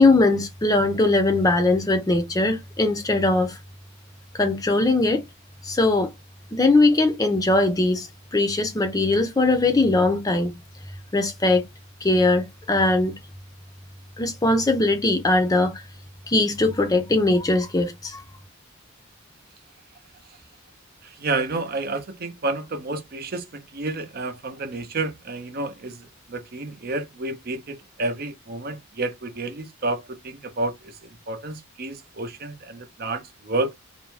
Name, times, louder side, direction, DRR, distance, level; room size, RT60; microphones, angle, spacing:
voice 1, 0.0-3.6 4.3-5.2 5.6-6.1 6.5-10.6 11.1-11.6 12.0-13.1 14.2-15.8 16.3-18.2, left 2 dB, 20° left, 0.5 m, -20 dB
voice 2, 21.0-33.7, right 2 dB, 50° right, 0.6 m, -30 dB
2.5 x 2.1 x 3.1 m
head